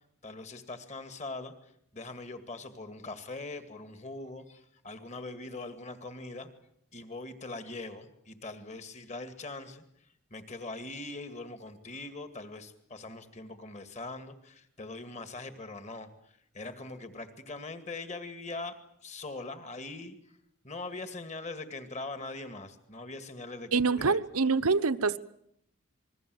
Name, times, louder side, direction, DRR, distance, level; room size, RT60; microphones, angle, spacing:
voice 1, 0.2-6.5 6.9-9.8 10.3-18.7 19.0-20.2 20.6-24.2, left 3 dB, 30° left, 2.2 m, -42 dB
voice 2, 23.7-25.2, right 4 dB, 90° right, 1.1 m, -25 dB
27.5 x 21.5 x 7.9 m
head